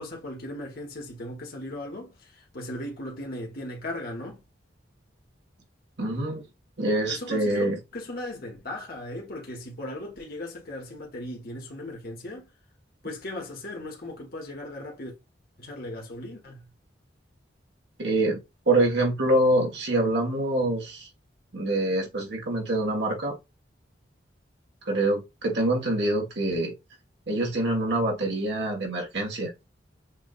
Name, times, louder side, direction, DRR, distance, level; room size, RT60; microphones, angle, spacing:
voice 1, 0.0-4.4 7.1-12.5 13.0-15.1 15.6-16.6, left 1 dB, 55° left, 1.5 m, -37 dB
voice 2, 6.0-6.4 6.8-7.8 18.0-18.4 18.7-21.1 21.5-23.3 24.8-26.7 27.3-29.5, right 1 dB, 70° right, 1.5 m, -25 dB
7.3 x 2.5 x 2.5 m
head